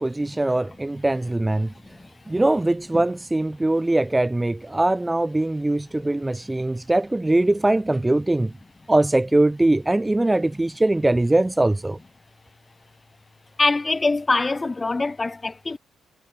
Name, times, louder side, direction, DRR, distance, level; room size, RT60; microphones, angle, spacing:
voice 1, 0.0-1.7 2.3-8.5 8.9-12.0, right 2 dB, 15° right, 1.2 m, -21 dB
voice 2, 13.6-15.8, left 3 dB, 20° left, 3.9 m, -23 dB
cardioid pair, 90°, 0 cm